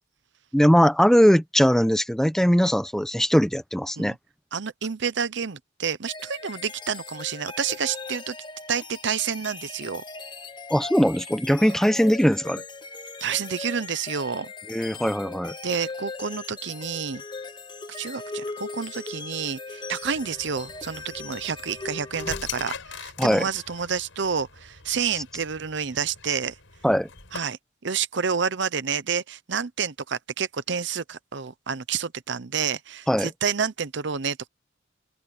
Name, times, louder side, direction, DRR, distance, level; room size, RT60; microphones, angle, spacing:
voice 1, 0.5-4.1 10.7-12.6 14.7-15.5 23.2-23.5 26.8-27.1 33.1-33.3, equal, ahead, 0.9 m, -20 dB
voice 2, 4.5-8.3 8.7-10.0 13.2-14.5 15.6-17.2 17.9-26.6 27.3-34.5, right 6 dB, 60° right, 0.8 m, -29 dB
sound 1, 6.1-22.7, left 3 dB, 25° left, 1.3 m, -39 dB
sound 2, 20.0-27.4, left 6 dB, 75° left, 5.0 m, -42 dB
open air
head